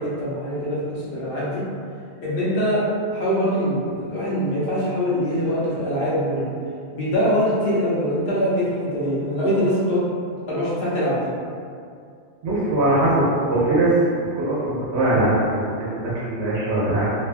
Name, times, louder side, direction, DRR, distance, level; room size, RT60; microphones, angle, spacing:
voice 1, 0.0-1.6 2.2-2.8 3.1-6.5 6.9-10.0 10.5-11.3, equal, 60° left, -9 dB, 0.9 m, -23 dB
voice 2, 12.4-14.0 14.4-17.1, right 1 dB, 75° right, -9 dB, 0.9 m, -21 dB
2.5 x 2.3 x 2.4 m, 2.4 s
omnidirectional pair, 1.1 m